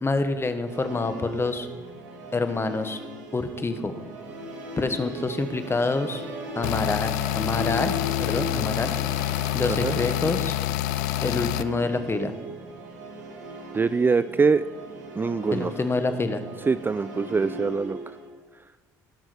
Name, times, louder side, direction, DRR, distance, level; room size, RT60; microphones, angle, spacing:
voice 1, 0.0-1.7 2.3-3.0 3.3-3.9 4.8-6.2 6.5-8.9 9.5-10.6 11.2-12.3 15.5-16.4, left 3 dB, 25° left, 9 dB, 1.2 m, -27 dB
Musical instrument, 0.7-18.3, equal, 90° right, 1.6 m, -38 dB
sound 1, 6.6-11.6, left 14 dB, 85° left, 0.4 m, -27 dB
voice 2, 9.6-10.0 13.7-14.6 15.2-15.7 16.7-18.0, right 4 dB, 20° right, 14 dB, 0.3 m, -23 dB
16.5 x 6.2 x 5.0 m, 1.4 s
hypercardioid pair, 60°, 9 cm